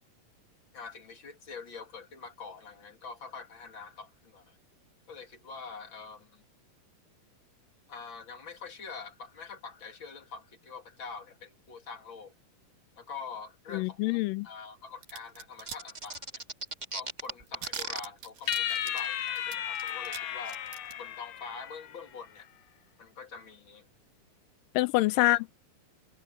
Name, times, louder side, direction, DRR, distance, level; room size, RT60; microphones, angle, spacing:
voice 1, 0.7-4.6 5.1-6.4 7.9-12.3 13.0-16.4 16.9-20.6 21.0-22.5 23.0-23.9 25.1-25.4, left 5 dB, 35° left, 2.9 m, -45 dB
voice 2, 13.7-14.5 24.8-25.5, left 20 dB, 80° left, 2.2 m, -26 dB
sound 1, 15.0-15.8 16.0-16.7 17.0-17.1 17.3-20.2 20.5-20.9, right 7 dB, 70° right, 4.3 m, -43 dB
sound 2, 15.7-18.0, right 2 dB, 25° right, 0.9 m, -36 dB
sound 3, 18.5-22.0, left 10 dB, 65° left, 1.8 m, -34 dB
omnidirectional pair, 4.1 m